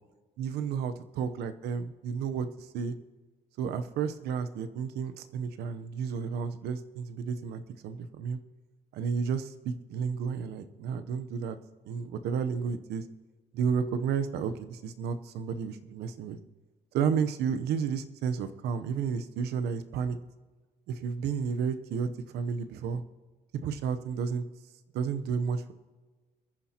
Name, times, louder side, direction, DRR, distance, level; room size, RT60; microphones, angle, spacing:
voice 1, 0.4-2.9 3.6-8.4 8.9-11.6 11.9-13.0 13.5-16.4 16.9-20.2 20.9-23.0 23.6-24.4 24.9-25.7, right 6 dB, 80° right, 10 dB, 0.9 m, -32 dB
23.0 x 10.0 x 2.9 m, 1.3 s
cardioid pair, 110°, 17 cm